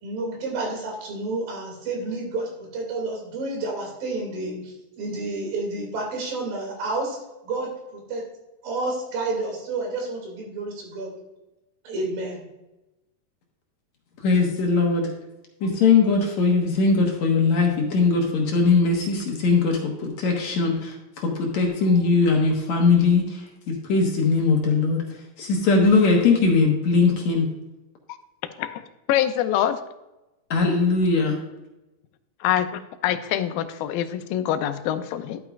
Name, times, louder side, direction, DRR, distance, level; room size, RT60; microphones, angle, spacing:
voice 1, 0.0-8.2 8.6-11.1 11.8-12.4, right 2 dB, 75° right, 0 dB, 4.2 m, -30 dB
voice 2, 14.2-15.1 15.6-25.0 25.4-27.5 30.5-31.4, left 4 dB, 60° left, 1 dB, 2.3 m, -20 dB
voice 3, 29.1-29.8 32.4-35.4, left 11 dB, 85° left, 10 dB, 2.3 m, -25 dB
12.0 x 8.7 x 2.4 m, 0.98 s
omnidirectional pair, 4.1 m